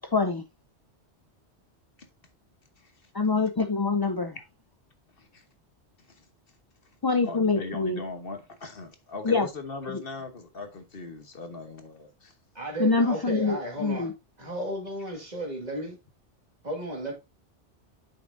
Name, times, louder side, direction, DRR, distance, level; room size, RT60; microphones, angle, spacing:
voice 1, 0.1-0.4 3.1-4.4 7.0-8.0 9.2-9.5 12.8-14.1, left 4 dB, 40° left, 0.3 m, -25 dB
voice 2, 2.8-3.1 5.2-5.4 6.1-6.3 7.2-12.3, left 3 dB, 55° left, 1.3 m, -39 dB
voice 3, 12.5-14.1 14.4-16.0 16.6-17.1, right 1 dB, 35° right, 2.2 m, -34 dB
8.7 x 6.0 x 2.6 m
omnidirectional pair, 1.2 m